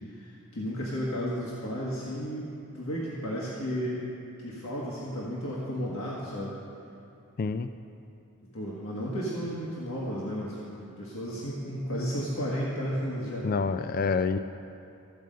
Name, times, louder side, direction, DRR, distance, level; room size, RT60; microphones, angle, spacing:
voice 1, 0.1-4.0 4.4-6.6 8.5-13.5, equal, 70° left, -5 dB, 1.5 m, -33 dB
voice 2, 7.4-7.7 13.4-14.4, left 5 dB, 45° left, 11 dB, 0.3 m, -27 dB
14.0 x 5.3 x 7.5 m, 2.6 s
head